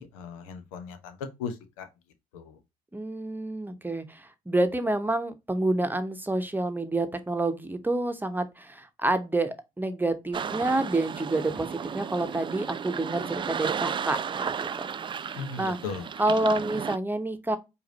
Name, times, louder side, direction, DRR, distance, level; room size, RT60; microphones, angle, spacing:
voice 1, 0.0-1.9 2.3-2.6 15.3-16.1, left 5 dB, 85° left, 0.8 m, -37 dB
voice 2, 2.9-14.9 15.3-15.8 16.2-17.6, right 2 dB, 10° right, 1.0 m, -28 dB
sound 1, 10.3-17.0, right 7 dB, 30° right, 0.3 m, -34 dB
4.8 x 2.7 x 4.0 m
hypercardioid pair, 55°, 17 cm